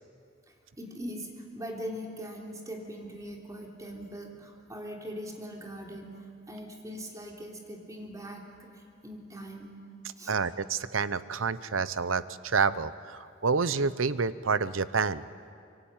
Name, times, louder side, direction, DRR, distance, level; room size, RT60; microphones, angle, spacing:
voice 1, 0.5-6.1 6.5-9.7 10.2-10.3, equal, 15° right, 0 dB, 3.4 m, -41 dB
voice 2, 10.3-15.2, right 5 dB, 80° right, 15 dB, 0.9 m, -28 dB
25.0 x 23.5 x 9.1 m, 2.3 s
head